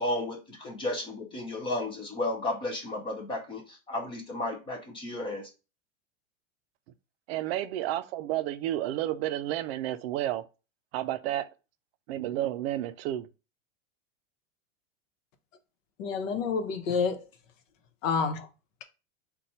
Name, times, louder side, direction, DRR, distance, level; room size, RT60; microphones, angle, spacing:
voice 1, 0.0-5.5, left 2 dB, 15° left, 0.3 m, -33 dB
voice 2, 7.3-10.5 10.9-11.5 12.1-13.3, right 13 dB, 55° right, 0.4 m, -31 dB
voice 3, 16.0-17.2 18.0-18.5, left 5 dB, 75° left, 0.9 m, -28 dB
4.0 x 2.3 x 4.1 m
supercardioid pair, 140°, 39 cm